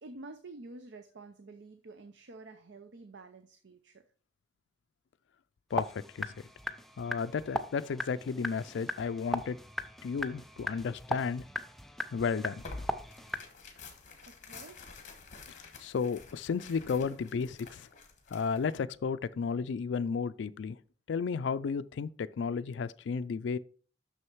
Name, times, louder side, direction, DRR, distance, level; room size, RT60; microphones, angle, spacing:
voice 1, 0.0-4.0 14.2-14.9 17.1-17.2, right 2 dB, 70° right, 0.6 m, -49 dB
voice 2, 5.7-6.3 7.0-9.6 10.0-11.4 12.1-12.6 15.5-17.9 18.3-20.8 21.1-23.6, left 5 dB, 75° left, 0.4 m, -33 dB
sound 1, 5.7-13.4, left 1 dB, ahead, 0.4 m, -39 dB
Tearing, 12.6-18.8, left 3 dB, 45° left, 1.4 m, -49 dB
6.4 x 6.3 x 4.5 m
head